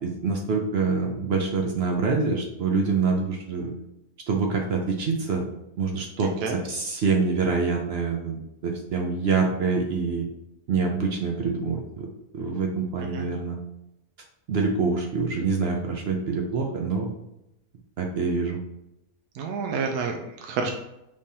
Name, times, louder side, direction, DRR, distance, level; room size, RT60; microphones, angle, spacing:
voice 1, 0.0-3.7 4.3-5.4 5.8-6.3 6.7-10.3 10.7-12.1 12.3-13.6 14.5-17.1 18.0-18.6, right 4 dB, 65° right, 2 dB, 0.6 m, -25 dB
voice 2, 19.3-20.7, right 5 dB, 85° right, 3 dB, 1.1 m, -29 dB
5.1 x 3.4 x 2.7 m, 0.88 s
omnidirectional pair, 1.6 m